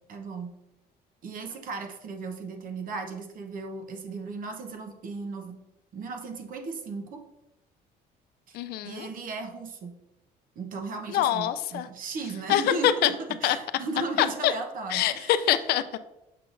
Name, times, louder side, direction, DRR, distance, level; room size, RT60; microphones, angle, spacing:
voice 1, 0.1-0.5 1.2-5.5 5.9-7.2 8.5-8.6 8.8-10.0 10.6-15.3, right 4 dB, 55° right, 4 dB, 1.0 m, -36 dB
voice 2, 8.5-9.1 11.1-11.9 12.5-13.1 13.4-13.6 14.2-14.5 14.9-16.0, left 12 dB, 70° left, 11 dB, 0.4 m, -24 dB
6.7 x 5.6 x 2.6 m, 0.94 s
cardioid pair, 110°, 17 cm